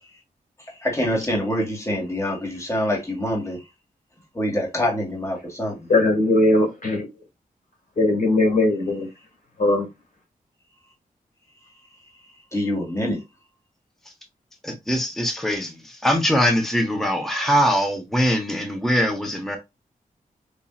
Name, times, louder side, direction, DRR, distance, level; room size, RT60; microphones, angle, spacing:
voice 1, 0.8-3.6 4.3-5.9 12.5-13.2, left 1 dB, 20° left, 1.7 m, -25 dB
voice 2, 5.9-7.1 8.0-9.1 9.6-9.9, left 2 dB, 60° left, 1.8 m, -19 dB
voice 3, 14.6-19.6, equal, ahead, 0.9 m, -22 dB
5.1 x 2.7 x 2.3 m
cardioid pair, 75°, 15 cm